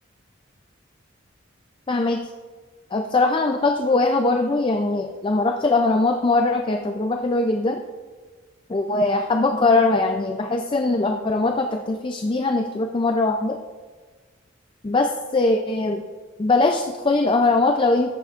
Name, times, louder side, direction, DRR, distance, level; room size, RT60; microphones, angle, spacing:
voice 1, 1.9-2.2 2.9-7.8 8.7-13.6 14.8-16.0 16.4-18.2, left 3 dB, 25° left, 4 dB, 0.4 m, -21 dB
13.5 x 6.9 x 2.5 m, 1.4 s
head